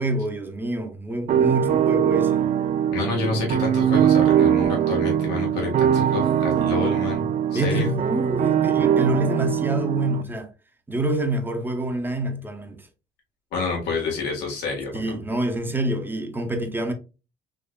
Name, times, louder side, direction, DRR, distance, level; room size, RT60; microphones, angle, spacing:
voice 1, 0.0-2.4 7.5-10.5 10.9-12.9 14.9-16.9, right 1 dB, 10° right, 0.7 m, -26 dB
sound 1, 1.3-10.2, right 9 dB, 45° right, 0.4 m, -21 dB
voice 2, 2.9-7.9 13.5-15.0, left 4 dB, 85° left, 1.6 m, -28 dB
3.6 x 3.1 x 2.3 m
cardioid pair, 110°, 17 cm